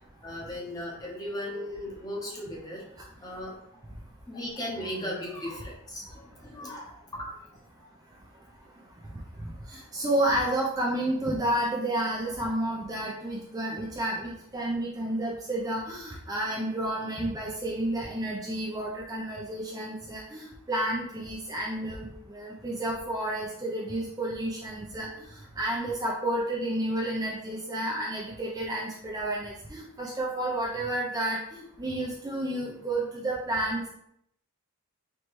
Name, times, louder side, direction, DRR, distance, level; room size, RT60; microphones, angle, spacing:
voice 1, 0.2-2.8 3.2-3.8 4.2-7.5 7.8-7.9, left 1 dB, 15° left, -3 dB, 0.9 m, -37 dB
voice 2, 9.7-25.1 25.6-33.9, right 1 dB, 15° right, -4 dB, 0.5 m, -31 dB
4.5 x 3.1 x 3.0 m, 0.74 s
head